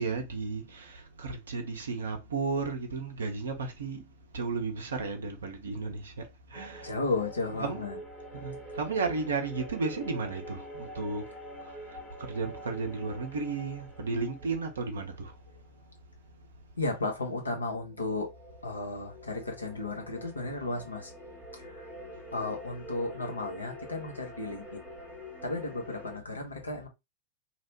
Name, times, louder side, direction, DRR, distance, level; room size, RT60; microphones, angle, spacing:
voice 1, 0.0-4.0 4.3-6.2 6.5-6.9 7.6-7.8 8.3-11.3 12.3-15.3, right 4 dB, 65° right, 0.5 m, -33 dB
sound 1, 6.5-15.9 17.4-26.2, equal, 10° left, 0.8 m, -46 dB
voice 2, 6.8-8.0 16.8-18.3 18.6-21.1 21.5-21.9 22.3-24.9 25.4-26.9, left 2 dB, 80° left, 0.8 m, -34 dB
2.8 x 2.0 x 2.7 m
figure-of-eight pair, 90°, 0 cm